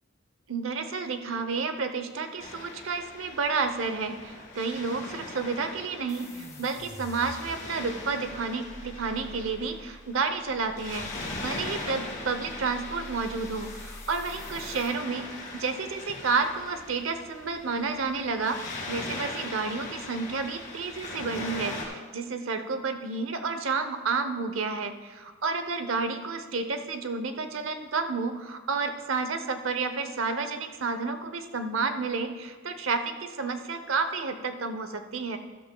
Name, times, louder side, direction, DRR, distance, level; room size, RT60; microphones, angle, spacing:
voice 1, 0.5-35.4, right 4 dB, 80° right, 8 dB, 0.8 m, -31 dB
Waves surf, 2.4-21.8, left 2 dB, 40° left, 2.4 m, -40 dB
sound 1, 6.1-15.0, left 1 dB, 15° left, 0.9 m, -46 dB
12.5 x 12.5 x 2.3 m, 1.5 s
head